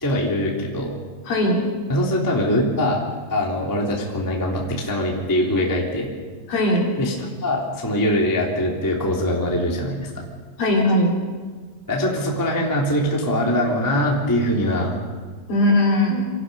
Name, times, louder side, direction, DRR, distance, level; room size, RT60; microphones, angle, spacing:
voice 1, 0.0-0.9 1.9-3.0 3.3-6.1 7.0-7.1 7.4-10.1 11.9-15.0, left 1 dB, 5° left, -2 dB, 2.0 m, -22 dB
voice 2, 1.2-1.7 6.5-6.9 10.6-11.2 15.5-16.3, left 1 dB, 50° left, -2 dB, 4.8 m, -19 dB
26.5 x 18.0 x 5.5 m, 1.5 s
omnidirectional pair, 5.5 m